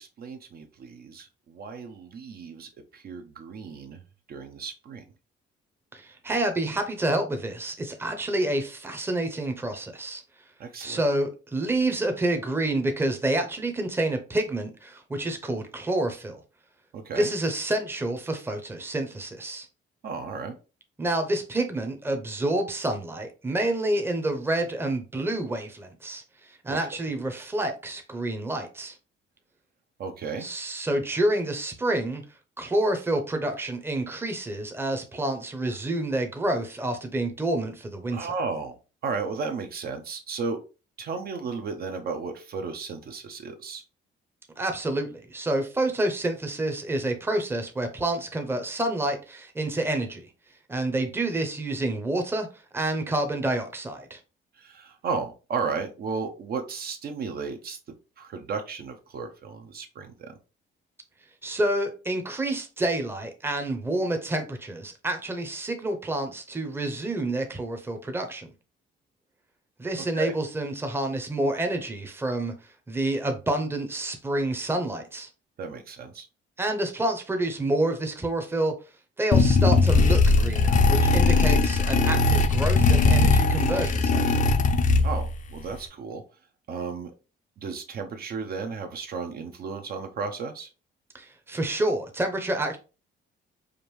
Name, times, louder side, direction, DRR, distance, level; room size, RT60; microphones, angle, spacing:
voice 1, 0.0-4.0 4.3-5.0 10.6-11.0 16.9-17.3 20.0-20.6 26.7-26.8 30.0-30.5 38.1-38.8 39.0-40.6 41.0-43.8 54.6-57.8 58.2-60.4 70.1-70.3 75.6-76.3 81.9-82.0 85.0-86.2 86.7-87.1 87.6-90.7, right 4 dB, 50° right, 0.6 m, -34 dB
voice 2, 5.9-10.2 10.8-16.4 17.1-19.7 21.0-29.0 30.4-32.2 32.6-38.3 44.6-50.3 50.7-52.5 52.7-54.2 61.4-68.5 69.8-75.3 76.6-78.7 79.2-84.2 91.1-92.8, right 1 dB, 10° right, 0.7 m, -28 dB
sound 1, 79.3-85.4, left 3 dB, 40° left, 0.5 m, -20 dB
5.0 x 2.6 x 3.1 m
cardioid pair, 130°, 20 cm